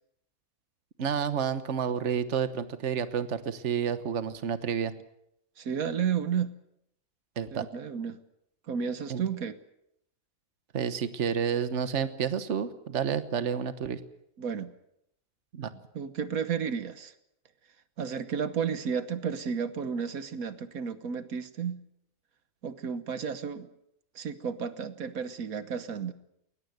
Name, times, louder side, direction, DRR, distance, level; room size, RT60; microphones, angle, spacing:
voice 1, 1.0-4.9 7.4-7.7 9.1-9.2 10.7-14.0 15.5-15.7, right 7 dB, 55° right, 11 dB, 1.4 m, -30 dB
voice 2, 5.6-6.5 7.5-8.2 8.7-9.6 14.4-14.7 15.9-17.1 18.0-21.8 22.6-23.7 24.1-26.1, right 7 dB, 80° right, 11 dB, 1.6 m, -32 dB
21.5 x 20.0 x 7.9 m, 0.78 s
omnidirectional pair, 1.5 m